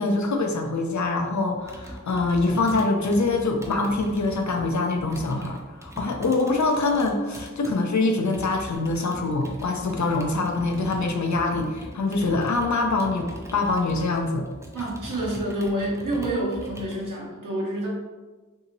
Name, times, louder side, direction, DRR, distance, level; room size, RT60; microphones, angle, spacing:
voice 1, 0.0-14.5, left 3 dB, 60° left, 3 dB, 0.5 m, -24 dB
Computer keyboard, 1.6-7.7 8.3-17.1, right 1 dB, 10° right, 0.5 m, -41 dB
voice 2, 14.7-17.9, right 1 dB, 75° right, -4 dB, 0.9 m, -28 dB
2.8 x 2.7 x 2.6 m, 1.3 s
wide cardioid pair, 40°, 32 cm